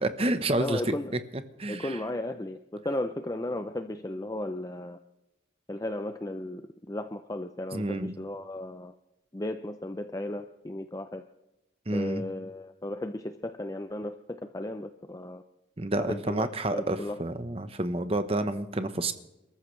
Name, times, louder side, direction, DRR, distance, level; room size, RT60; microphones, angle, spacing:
voice 1, 0.0-0.9 1.6-2.0 7.7-8.1 11.9-12.2 15.8-19.1, right 2 dB, 30° right, 10 dB, 0.9 m, -29 dB
voice 2, 0.6-1.2 1.7-5.0 5.7-6.6 6.9-8.9 9.3-11.2 11.9-15.4 16.0-17.2, left 1 dB, 20° left, 8 dB, 0.5 m, -35 dB
28.0 x 14.0 x 3.3 m, 0.95 s
head